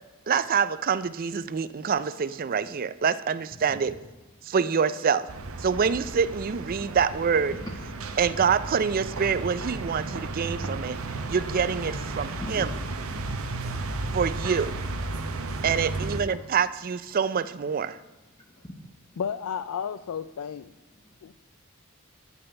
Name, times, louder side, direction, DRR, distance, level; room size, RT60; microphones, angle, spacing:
voice 1, 0.3-3.9 4.4-5.3 5.6-7.6 8.2-11.0 11.3-12.7 14.1-14.7 15.6-18.0, right 6 dB, 40° right, 15 dB, 0.4 m, -26 dB
voice 2, 3.5-3.9 4.4-4.5 7.5-8.4 8.7-8.8 9.7-9.9 12.1-12.7 18.3-19.2 20.9-21.3, left 1 dB, 20° left, 1 dB, 0.9 m, -45 dB
sound 1, 5.3-16.2, right 2 dB, 75° right, 0.9 m, -34 dB
voice 3, 19.2-20.7 21.2-21.3, left 7 dB, 85° left, 13 dB, 0.4 m, -32 dB
10.5 x 5.5 x 6.9 m, 1.2 s
head